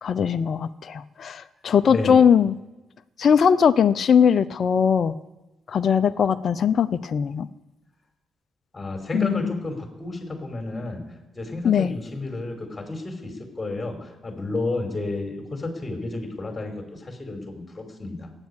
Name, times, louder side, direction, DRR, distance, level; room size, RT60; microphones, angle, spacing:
voice 1, 0.0-2.6 3.2-5.2 5.7-7.5 9.1-9.5 11.6-11.9, left 7 dB, 55° left, 13 dB, 0.7 m, -20 dB
voice 2, 1.9-2.2 8.7-11.0 11.3-18.3, left 2 dB, 25° left, 3 dB, 5.3 m, -31 dB
16.5 x 9.9 x 8.3 m, 1.1 s
hypercardioid pair, 45°, 0 cm